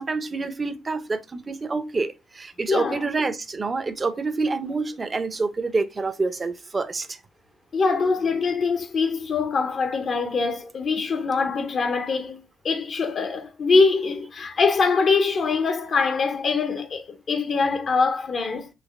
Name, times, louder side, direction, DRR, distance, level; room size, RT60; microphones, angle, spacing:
voice 1, 0.0-7.2, right 3 dB, 30° right, 0.6 m, -27 dB
voice 2, 2.7-3.1 7.7-18.7, left 4 dB, 50° left, 0.6 m, -23 dB
4.1 x 2.8 x 3.1 m
cardioid pair, 90°, 0 cm